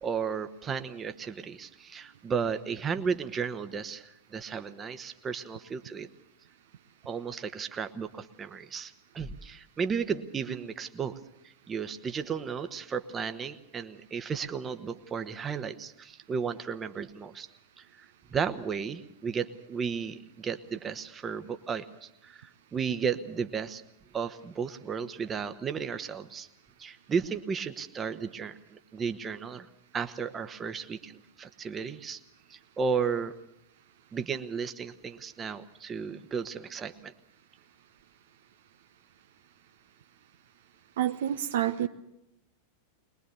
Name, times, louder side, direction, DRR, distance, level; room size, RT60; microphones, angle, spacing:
voice 1, 0.0-6.1 7.0-11.2 11.7-17.5 17.8-23.8 24.1-26.5 26.8-29.7 29.9-32.2 32.5-33.3 34.1-37.1, right 6 dB, 20° right, 9 dB, 1.2 m, -34 dB
voice 2, 41.0-41.9, right 11 dB, 60° right, 9 dB, 0.8 m, -28 dB
22.5 x 21.5 x 6.8 m, 0.83 s
figure-of-eight pair, 90°, 0 cm